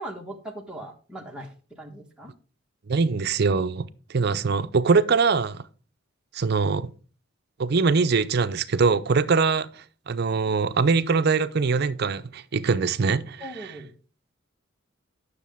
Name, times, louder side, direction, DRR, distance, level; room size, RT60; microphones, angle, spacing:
voice 1, 0.0-1.5 1.8-2.3 13.4-13.9, right 1 dB, 5° right, 1.2 m, -39 dB
voice 2, 2.9-3.9 4.1-5.6 6.3-6.9 7.6-13.8, right 4 dB, 50° right, 0.5 m, -23 dB
9.8 x 6.4 x 3.5 m
head